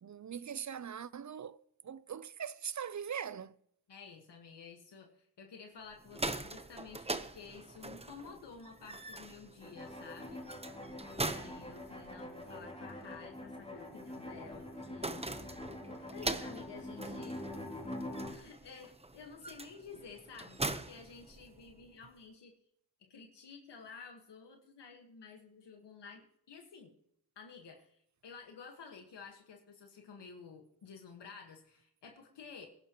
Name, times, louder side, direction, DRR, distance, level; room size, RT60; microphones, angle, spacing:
voice 1, 0.0-3.5, right 8 dB, 45° right, 0.6 m, -41 dB
voice 2, 3.9-10.4 11.1-15.3 16.1-17.4 18.3-22.5 23.0-26.9 27.3-32.7, left 5 dB, 80° left, 1.7 m, -52 dB
sound 1, 5.9-21.9, right 2 dB, 15° right, 1.0 m, -43 dB
sound 2, 9.6-18.3, left 1 dB, 15° left, 2.9 m, -45 dB
21.5 x 11.5 x 3.1 m
cardioid pair, 75°, 41 cm